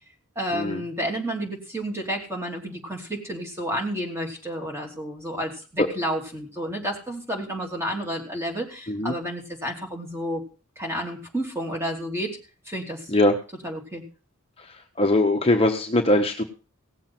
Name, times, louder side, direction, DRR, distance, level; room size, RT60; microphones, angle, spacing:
voice 1, 0.3-10.4 10.8-12.4 12.7-13.1 13.6-14.0, equal, 10° right, 1 dB, 3.1 m, -31 dB
voice 2, 14.6-16.4, left 1 dB, 25° left, 4 dB, 1.1 m, -21 dB
17.5 x 7.4 x 6.0 m, 0.35 s
head